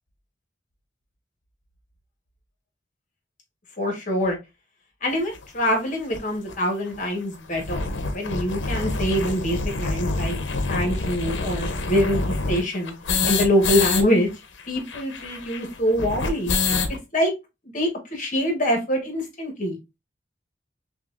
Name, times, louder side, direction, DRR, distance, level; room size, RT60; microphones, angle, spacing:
voice 1, 3.8-4.4 5.0-10.3 10.7-12.9 13.2-14.3 14.7-16.5 17.1-17.3 17.7-19.8, equal, 45° left, 1.3 m, -24 dB
sound 1, 5.3-5.4 6.1-6.2 6.5-6.6 6.9-7.0 7.3-14.0 14.3-14.4 14.6-17.0, left 3 dB, 80° left, 0.7 m, -26 dB
5.7 x 2.4 x 2.4 m
head